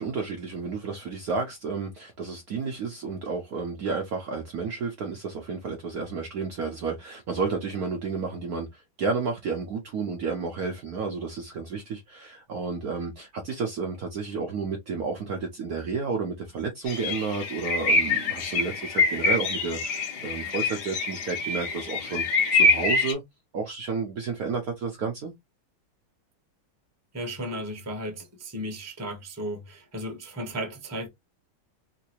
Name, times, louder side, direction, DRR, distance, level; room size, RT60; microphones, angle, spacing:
voice 1, 0.0-22.2 22.5-23.2 23.5-25.3, right 4 dB, 65° right, 1.0 m, -31 dB
sound 1, 16.9-23.1, left 3 dB, 60° left, 1.5 m, -25 dB
voice 2, 27.1-31.1, equal, 15° right, 0.7 m, -35 dB
3.7 x 2.6 x 2.9 m
omnidirectional pair, 2.2 m